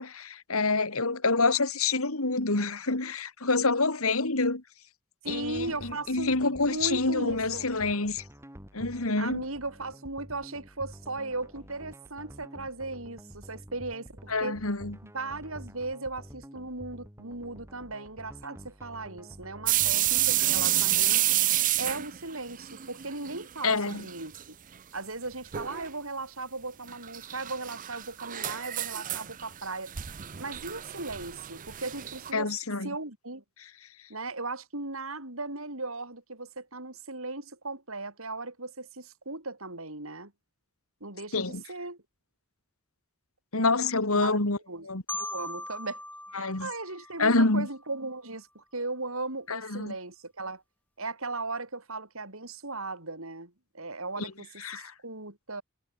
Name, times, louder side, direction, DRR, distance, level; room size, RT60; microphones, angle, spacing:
voice 1, 0.0-4.6 5.3-8.2 8.7-9.4 14.3-15.0 23.6-24.0 32.3-32.9 41.3-41.6 43.5-44.6 44.9-45.0 46.3-46.7 47.2-47.7 49.5-49.9 54.2-54.3 54.6-54.9, left 3 dB, 80° left, 2.7 m, -27 dB
sound 1, 5.2-20.7, equal, 10° right, 7.4 m, -48 dB
voice 2, 5.2-6.3 6.6-7.7 9.2-14.6 15.0-21.4 21.8-24.6 24.9-29.9 30.4-32.5 32.8-33.4 34.1-40.3 41.0-42.0 44.1-44.9 45.2-46.0 46.3-50.6 51.0-55.6, right 3 dB, 70° right, 7.8 m, -37 dB
sound 2, 19.7-23.5 23.7-24.4 24.8-24.9 25.5-25.9 26.9-32.3, right 13 dB, 40° right, 0.6 m, -29 dB
Marimba xylophone, 45.1-47.9, left 1 dB, 5° left, 8.0 m, -40 dB
head